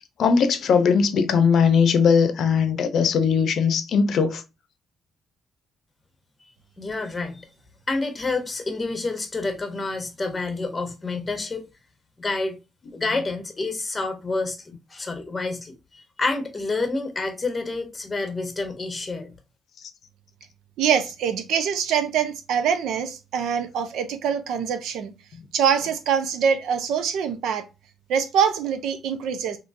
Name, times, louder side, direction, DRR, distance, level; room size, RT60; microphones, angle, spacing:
voice 1, 0.2-4.4, left 6 dB, 55° left, 0.6 m, -19 dB
voice 2, 6.8-7.5 7.9-11.6 12.2-12.6 12.9-14.6 14.9-19.3, left 3 dB, 15° left, 0.9 m, -28 dB
voice 3, 20.8-25.1 25.5-27.6 28.1-29.6, right 7 dB, 85° right, 0.7 m, -24 dB
3.6 x 2.9 x 2.5 m
cardioid pair, 150°, 0 cm